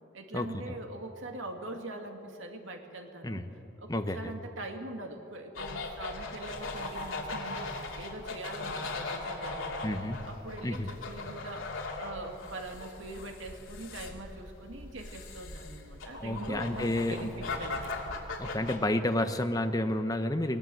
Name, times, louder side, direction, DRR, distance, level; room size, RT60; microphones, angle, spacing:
voice 1, 0.1-3.4 3.8-9.9 10.2-11.7 12.0-18.2, right 2 dB, 75° right, 4 dB, 2.2 m, -43 dB
sound 1, 5.5-18.8, left 3 dB, 85° left, 2.6 m, -39 dB
voice 2, 9.8-10.2 10.6-10.9 16.2-17.3 18.4-20.6, left 1 dB, 20° left, 8 dB, 0.9 m, -30 dB
20.0 x 19.5 x 7.8 m, 2.9 s
head